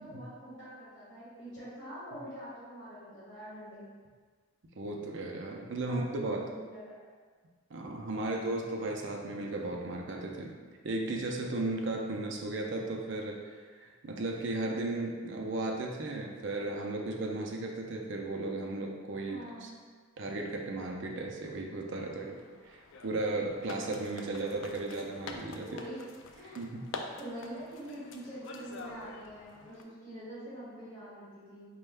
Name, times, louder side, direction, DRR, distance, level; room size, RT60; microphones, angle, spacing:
voice 1, 0.0-3.8 5.8-7.0 8.2-8.6 19.2-19.7 25.7-26.1 26.3-26.6 27.2-31.7, right 1 dB, 25° left, -13 dB, 1.5 m, -45 dB
voice 2, 4.8-6.5 7.7-10.5 10.8-13.4 13.8-19.7 20.2-22.4 22.6-25.7 26.5-26.9, right 2 dB, 60° right, 1 dB, 0.5 m, -35 dB
sound 1, 22.0-29.8, left 3 dB, 60° left, 0.3 m, -47 dB
4.3 x 2.2 x 3.3 m, 1.6 s
head